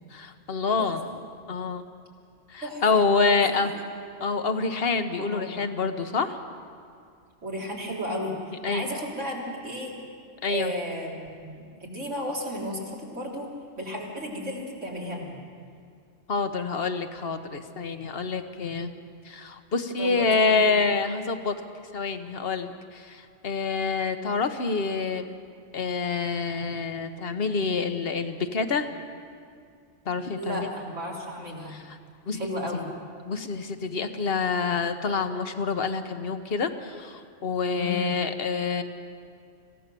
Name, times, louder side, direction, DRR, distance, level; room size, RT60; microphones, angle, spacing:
voice 1, 0.1-1.0 1.5-1.9 2.5-3.7 4.2-6.4 8.6-8.8 10.4-10.7 16.3-18.9 19.2-21.5 21.9-25.3 25.7-28.9 30.0-30.7 31.7-32.0 32.3-32.4 33.3-38.8, left 4 dB, 55° left, 8 dB, 1.3 m, -27 dB
voice 2, 2.6-3.0 3.3-3.7 5.2-5.7 7.4-8.3 8.7-9.9 10.5-13.5 13.8-15.3 20.0-20.6 30.4-31.8 32.3-32.9 37.8-38.1, equal, 80° right, -3 dB, 4.0 m, -34 dB
26.0 x 16.5 x 6.9 m, 2.3 s
omnidirectional pair, 1.2 m